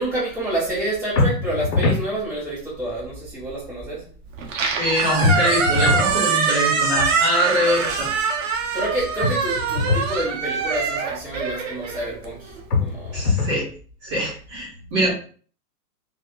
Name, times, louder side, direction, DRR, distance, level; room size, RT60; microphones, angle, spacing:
voice 1, 0.0-4.0 8.7-12.5 12.8-13.3 15.0-15.1, right 1 dB, 5° right, -10 dB, 1.1 m, -28 dB
sound 1, 1.2-2.1 5.2-6.1 9.2-10.1 12.7-13.6, left 3 dB, 80° left, 1.0 m, -22 dB
Squeak, 4.4-12.6, right 5 dB, 50° right, 0.6 m, -24 dB
voice 2, 4.8-8.1 13.1-13.7 14.0-15.1, equal, 25° right, -6 dB, 1.2 m, -23 dB
3.3 x 2.4 x 2.3 m, 0.42 s
hypercardioid pair, 155°, 48 cm